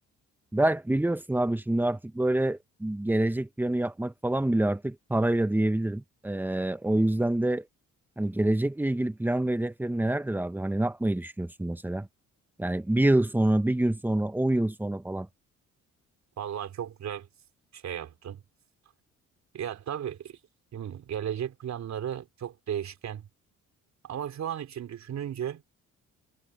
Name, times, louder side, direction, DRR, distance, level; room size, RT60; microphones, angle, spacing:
voice 1, 0.5-7.6 8.2-12.1 12.6-15.3, right 1 dB, 5° right, 1.1 m, -26 dB
voice 2, 16.4-17.3 17.7-18.4 19.5-20.4 20.7-23.3 24.0-25.6, right 9 dB, 65° right, 3.3 m, -35 dB
cardioid pair, 90°, 30 cm